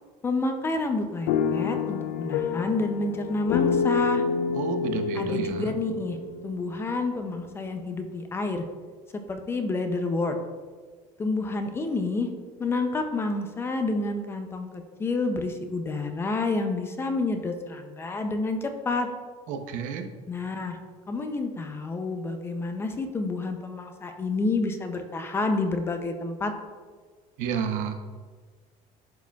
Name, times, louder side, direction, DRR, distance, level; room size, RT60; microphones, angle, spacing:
voice 1, 0.2-4.2 5.2-6.2 6.4-8.6 9.1-10.4 11.2-12.3 12.6-19.1 20.3-20.8 21.1-26.5, left 3 dB, 15° left, 6 dB, 0.4 m, -29 dB
sound 1, 1.3-7.3, left 6 dB, 85° left, 0.4 m, -28 dB
voice 2, 4.5-5.7 19.5-20.1 27.4-27.9, right 7 dB, 70° right, 7 dB, 0.7 m, -31 dB
11.0 x 4.8 x 2.3 m, 1.5 s
cardioid pair, 175°, 14 cm